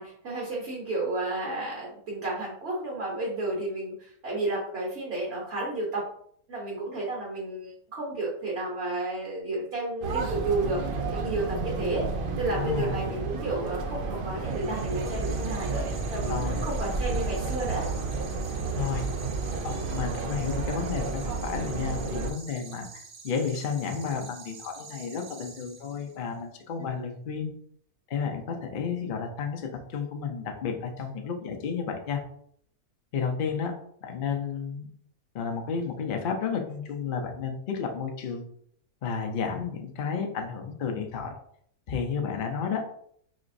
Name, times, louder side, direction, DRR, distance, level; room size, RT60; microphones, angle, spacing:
voice 1, 0.0-6.0 6.5-12.1 12.3-17.9, right 2 dB, 50° right, -3 dB, 1.1 m, -32 dB
sound 1, 10.0-22.3, right 3 dB, 90° right, 0.4 m, -31 dB
voice 2, 12.5-13.0 16.3-16.7 18.8-19.0 19.6-22.9 23.2-27.5 28.1-32.2 33.1-33.7 34.0-34.9 35.3-38.4 39.0-41.3 41.9-43.0, left 6 dB, 65° left, 3 dB, 0.5 m, -32 dB
sound 2, 14.5-26.3, right 5 dB, 70° right, 1.2 m, -47 dB
4.1 x 3.0 x 2.6 m, 0.65 s
omnidirectional pair, 1.6 m